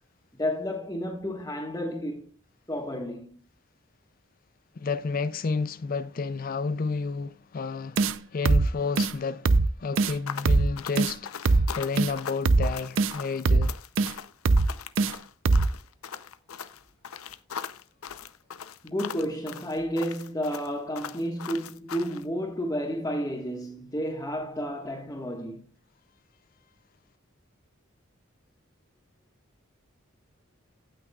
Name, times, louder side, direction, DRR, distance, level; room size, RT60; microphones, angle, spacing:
voice 1, 0.4-2.2 2.7-3.3 18.8-25.7, equal, 15° left, 1.5 m, -31 dB
voice 2, 4.8-13.7, left 4 dB, 40° left, 0.4 m, -31 dB
sound 1, 8.0-8.2 8.5-8.7 9.0-9.1 9.5-9.7 10.0-10.1 10.5-10.7 11.0-11.1 11.5-11.7 12.0-12.1 12.5-12.7 13.0-13.1 13.5-13.7 14.0-14.1 14.5-14.7 15.0-15.1 15.5-15.7, right 3 dB, 65° right, 0.6 m, -21 dB
sound 2, 10.3-22.2, left 7 dB, 90° left, 0.7 m, -40 dB
17.5 x 6.2 x 2.4 m
head